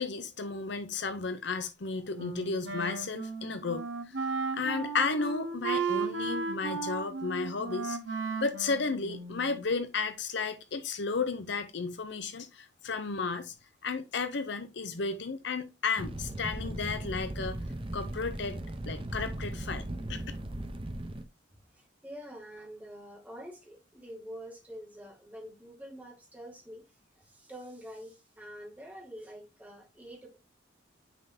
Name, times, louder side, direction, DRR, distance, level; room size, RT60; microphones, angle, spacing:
voice 1, 0.0-3.8 4.5-8.0 8.4-13.5 13.8-17.6 17.9-18.6 18.9-19.8 20.1-20.2, left 4 dB, 65° left, 0.7 m, -33 dB
Wind instrument woodwind instrument, 2.1-9.6, right 4 dB, 70° right, 1.4 m, -35 dB
Fire, 16.0-21.2, right 1 dB, 30° right, 0.7 m, -37 dB
voice 2, 21.7-26.8 27.2-30.4, equal, 10° right, 1.8 m, -46 dB
9.3 x 3.8 x 2.8 m
head